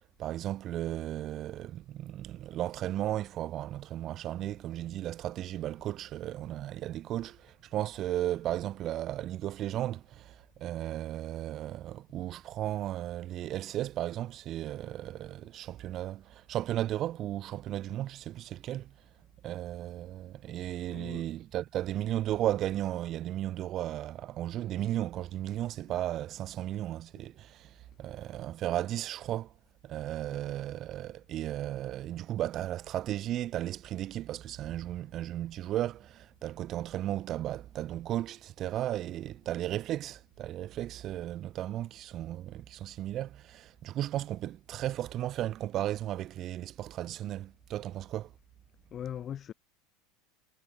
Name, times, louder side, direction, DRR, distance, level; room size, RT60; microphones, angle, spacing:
voice 1, 0.2-18.9 19.4-29.5 29.8-48.3, right 13 dB, 45° right, 1.3 m, -35 dB
voice 2, 20.9-21.3 27.2-27.3 30.3-30.4 48.9-49.5, left 9 dB, 40° left, 2.6 m, -40 dB
hypercardioid pair, 80°, 0 cm